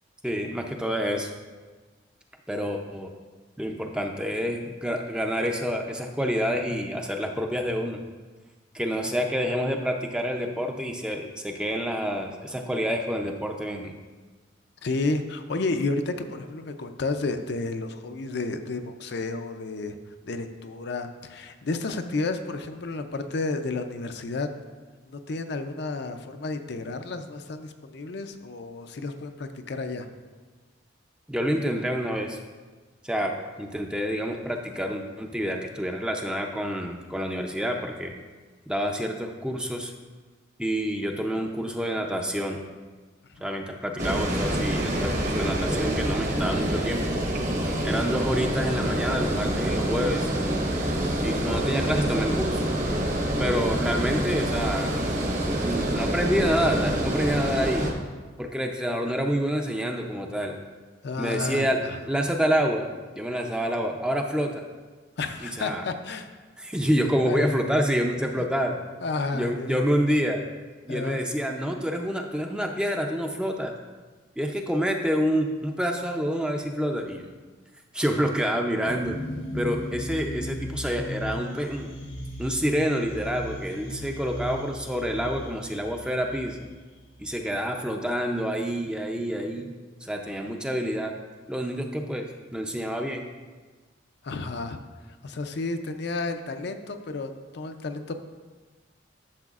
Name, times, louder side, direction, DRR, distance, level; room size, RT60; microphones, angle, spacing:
voice 1, 0.2-1.3 2.5-3.1 3.6-8.0 8.7-13.9 31.3-32.4 33.0-38.1 38.7-39.9 40.6-42.6 43.4-47.0 47.8-50.3 51.2-52.7 53.4-55.0 55.6-57.9 58.4-60.6 61.2-61.8 62.1-62.9 63.2-64.6 65.4-65.8 66.6-68.8 69.3-70.4 70.9-73.7 74.4-77.3 77.9-79.2 79.5-81.9 82.4-86.6 87.2-89.7 90.0-91.1 91.5-92.3 92.5-93.3, equal, 5° right, 2 dB, 0.5 m, -28 dB
voice 2, 14.8-20.0 20.2-24.5 25.1-30.1 43.3-43.5 61.0-62.0 65.2-66.3 67.3-67.5 68.3-68.5 69.0-69.8 70.9-71.2 94.2-94.8 95.2-98.1, left 3 dB, 55° left, 7 dB, 0.5 m, -31 dB
Water, 44.0-57.9, right 1 dB, 40° right, 1.0 m, -26 dB
sound 1, 78.9-87.4, left 1 dB, 90° left, 1.3 m, -37 dB
12.0 x 6.7 x 2.4 m, 1.4 s
head